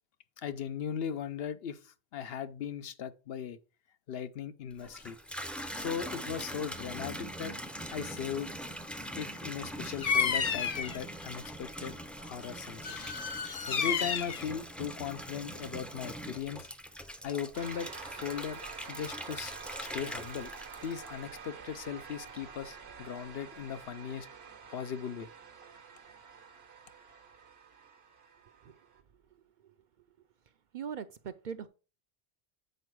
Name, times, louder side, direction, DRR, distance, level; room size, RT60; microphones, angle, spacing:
voice 1, 0.4-3.6 4.1-5.2 5.7-7.5 7.9-8.5 9.2-13.3 13.7-16.7 17.2-20.5 20.8-24.3 24.7-25.3, left 8 dB, 70° left, 0.9 m, -38 dB
Water tap faucet / Bathtub (filling or washing), 4.7-21.6 22.1-22.7, equal, ahead, 0.5 m, -42 dB
Bird vocalization bird call bird song, 10.0-11.0 12.8-14.4, left 6 dB, 45° left, 0.6 m, -31 dB
sound 1, 17.5-29.0, right 6 dB, 80° right, 1.2 m, -48 dB
voice 2, 30.7-31.7, right 7 dB, 55° right, 0.6 m, -40 dB
7.9 x 4.5 x 4.6 m
omnidirectional pair, 1.0 m